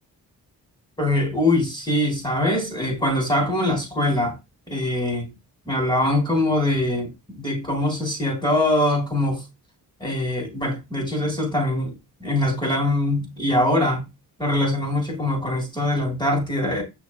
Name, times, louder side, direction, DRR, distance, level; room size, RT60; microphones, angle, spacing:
voice 1, 1.0-4.3 4.7-5.3 5.7-9.4 10.0-11.9 12.2-14.1 14.4-16.8, left 1 dB, 10° left, 3.5 m, -23 dB
6.5 x 6.3 x 2.4 m
cardioid pair, 85°, 40 cm